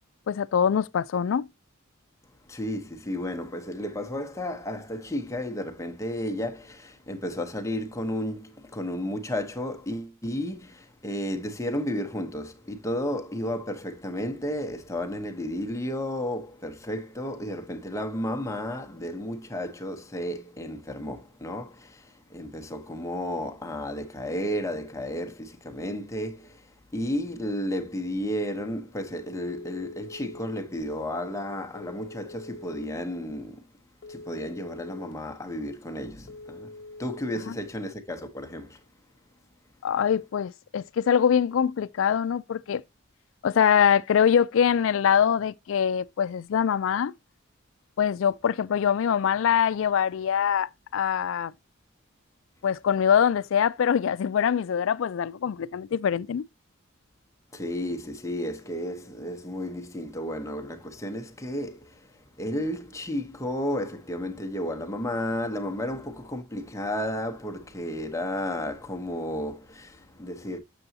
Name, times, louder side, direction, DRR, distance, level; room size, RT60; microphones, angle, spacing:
voice 1, 0.3-1.5 37.5-37.6 39.8-42.8 43.4-47.1 48.0-51.5 52.6-56.4, left 8 dB, 70° left, 0.3 m, -23 dB
voice 2, 2.5-33.7 34.1-36.7 37.0-38.8 57.5-62.1 62.4-70.6, left 1 dB, 15° left, 0.8 m, -33 dB
Telephone, 29.5-30.6 31.7-32.8 34.0-35.1 36.3-37.4, left 2 dB, 55° left, 0.8 m, -44 dB
6.9 x 6.8 x 2.7 m
head